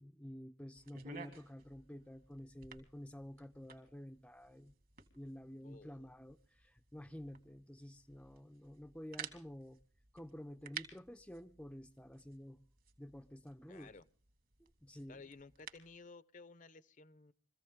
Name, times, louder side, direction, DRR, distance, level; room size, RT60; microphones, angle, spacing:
voice 1, 0.0-4.7 5.1-9.8 10.1-12.6 13.0-13.9 14.6-15.2, equal, 5° left, 8 dB, 0.7 m, -51 dB
sound 1, 0.7-16.0, right 6 dB, 50° right, 2.1 m, -55 dB
voice 2, 5.6-6.1 13.7-14.1 15.1-17.3, left 3 dB, 40° left, 16 dB, 0.8 m, -56 dB
23.5 x 15.0 x 3.7 m, 0.42 s
head